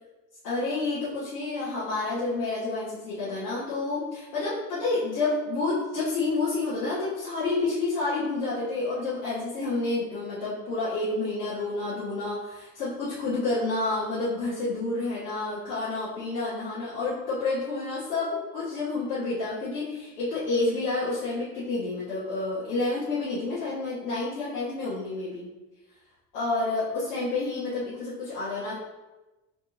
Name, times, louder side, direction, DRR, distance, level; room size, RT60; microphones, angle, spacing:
voice 1, 0.4-25.5 26.3-28.7, left 3 dB, 85° left, -9 dB, 1.0 m, -29 dB
7.2 x 2.8 x 2.4 m, 1.1 s
hypercardioid pair, 55°, 46 cm